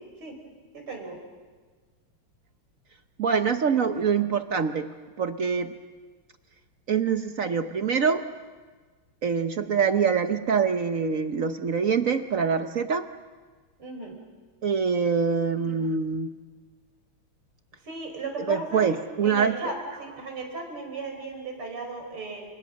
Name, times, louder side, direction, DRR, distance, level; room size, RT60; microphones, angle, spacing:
voice 1, 0.7-1.2 13.8-14.2 17.8-22.5, right 3 dB, 85° right, 3 dB, 5.7 m, -36 dB
voice 2, 3.2-4.9 5.2-5.7 6.9-8.2 9.2-13.1 14.6-16.3 18.5-19.6, right 6 dB, 55° right, 8 dB, 0.9 m, -24 dB
28.5 x 26.5 x 6.4 m, 1.4 s
omnidirectional pair, 2.4 m